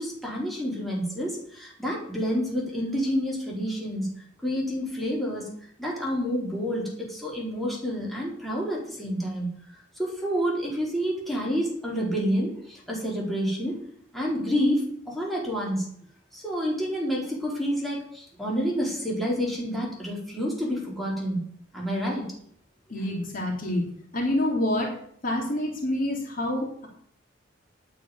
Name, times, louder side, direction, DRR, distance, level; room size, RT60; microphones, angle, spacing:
voice 1, 0.0-4.1 4.4-5.5 5.8-9.5 10.0-13.8 14.1-15.9 16.3-21.4 21.7-22.3, equal, ahead, -4 dB, 4.3 m, -28 dB
voice 2, 22.9-23.9 24.1-24.9 25.2-26.9, left 1 dB, 45° left, 0 dB, 3.3 m, -27 dB
9.5 x 8.1 x 9.6 m, 0.64 s
head